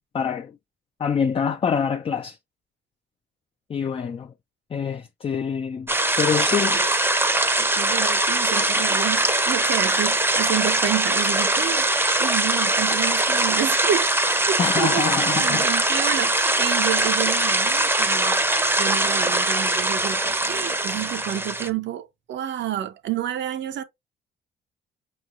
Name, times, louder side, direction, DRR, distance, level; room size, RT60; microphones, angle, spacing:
voice 1, 0.1-0.5 1.0-2.4 3.7-4.3 4.7-5.9 6.2-6.8 14.6-15.7, left 7 dB, 30° left, 0.4 m, -25 dB
sound 1, 5.9-21.7, right 2 dB, 10° right, 0.7 m, -22 dB
voice 2, 7.6-11.9 12.2-14.1 14.5-18.4 18.8-23.8, right 10 dB, 65° right, 0.7 m, -29 dB
5.2 x 3.1 x 2.4 m
cardioid pair, 90°, 20 cm